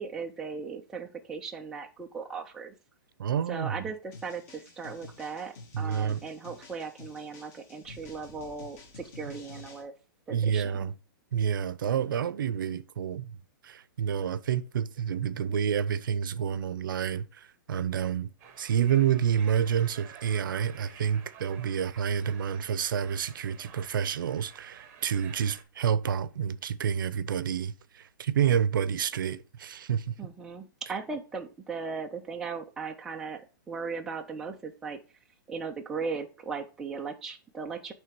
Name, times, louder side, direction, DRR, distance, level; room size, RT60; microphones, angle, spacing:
voice 1, 0.0-2.7 3.5-9.9 10.3-10.8 30.2-35.0 35.5-37.9, right 5 dB, 5° right, 0.3 m, -37 dB
voice 2, 3.2-3.9 5.7-6.2 10.3-10.9 11.3-13.4 13.6-18.3 18.6-30.2, right 8 dB, 70° right, 0.6 m, -29 dB
sound 1, 4.1-9.8, left 2 dB, 40° left, 2.0 m, -50 dB
sound 2, 7.8-9.4 10.3-10.4 16.3-16.4, left 1 dB, 15° left, 4.3 m, -56 dB
sound 3, 18.4-25.6, right 7 dB, 20° right, 0.9 m, -51 dB
8.8 x 3.4 x 4.6 m
hypercardioid pair, 170°, 11 cm